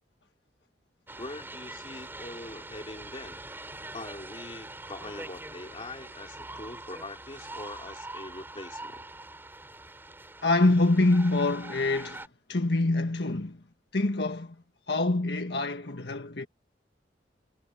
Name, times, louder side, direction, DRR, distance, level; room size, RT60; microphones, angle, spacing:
sound 1, 1.1-12.3, right 2 dB, 10° right, 5.4 m, -43 dB
voice 1, 1.2-3.4 3.9-9.0, left 2 dB, 30° left, 3.3 m, -43 dB
voice 2, 10.4-13.6 13.9-14.5 14.9-16.5, left 2 dB, 65° left, 1.6 m, -25 dB
head